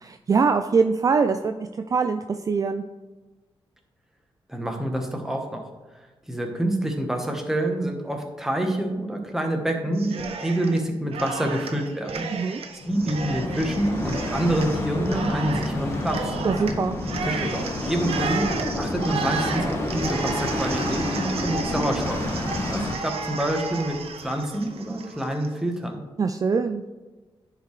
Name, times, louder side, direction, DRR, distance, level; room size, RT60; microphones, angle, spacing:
voice 1, 0.0-2.8 12.3-12.6 16.4-17.0 26.2-26.8, right 5 dB, 35° right, 7 dB, 0.3 m, -23 dB
voice 2, 4.5-5.7 5.9-12.6 12.9-16.3 17.2-22.2 22.7-26.0, right 1 dB, 5° right, 3 dB, 1.2 m, -27 dB
Cheering, 10.0-10.8 11.1-25.5, right 5 dB, 80° right, 0.8 m, -33 dB
sound 1, 12.8-23.0, left 1 dB, 25° left, 1.3 m, -29 dB
10.0 x 4.7 x 3.3 m, 1.2 s
wide cardioid pair, 110°, 10 cm